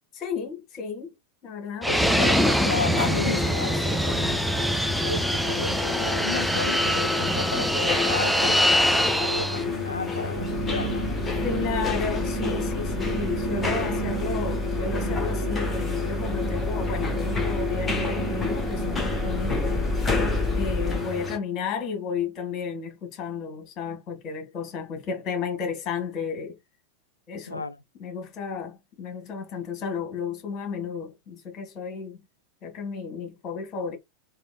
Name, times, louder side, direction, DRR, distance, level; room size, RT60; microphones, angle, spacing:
voice 1, 0.1-1.1 1.4-3.3 3.6-3.8 11.4-19.8 20.5-26.6 27.3-27.6 28.0-32.2 32.6-34.0, left 5 dB, 35° left, 1.3 m, -33 dB
Fixed-wing aircraft airplane, 1.8-9.6, equal, ahead, 0.3 m, -24 dB
voice 2, 1.9-4.4 5.0-8.7 9.2-11.1 27.5-27.8, left 3 dB, 80° left, 0.4 m, -33 dB
sound 1, 2.2-21.4, left 4 dB, 15° left, 0.9 m, -31 dB
sound 2, 10.3-21.0, equal, 20° right, 1.8 m, -29 dB
3.5 x 2.9 x 2.2 m
figure-of-eight pair, 90°, 0 cm